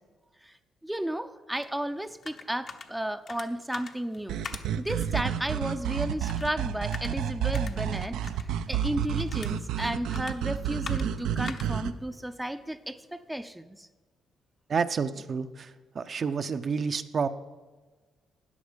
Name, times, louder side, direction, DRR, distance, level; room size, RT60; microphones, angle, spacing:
voice 1, 0.8-4.4 4.8-13.9, right 1 dB, 5° right, 9 dB, 0.5 m, -33 dB
sound 1, 1.6-13.3, left 5 dB, 55° left, 1.0 m, -47 dB
sound 2, 4.3-11.9, right 9 dB, 85° right, 0.5 m, -30 dB
voice 2, 14.7-15.7 15.9-17.3, right 5 dB, 45° right, 9 dB, 0.6 m, -29 dB
13.5 x 9.3 x 5.1 m, 1.3 s
cardioid pair, 90°, 0 cm